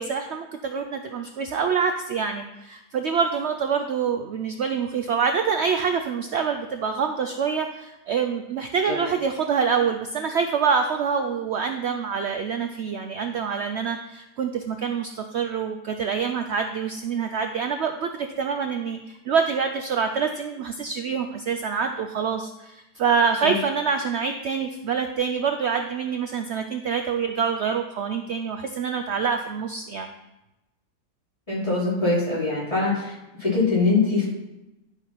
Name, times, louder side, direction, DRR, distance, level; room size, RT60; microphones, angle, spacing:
voice 1, 0.0-30.1, right 6 dB, 65° right, 6 dB, 0.6 m, -26 dB
voice 2, 31.5-33.1 33.4-34.3, left 3 dB, 20° left, -8 dB, 3.7 m, -22 dB
11.0 x 5.1 x 5.7 m, 0.96 s
omnidirectional pair, 1.8 m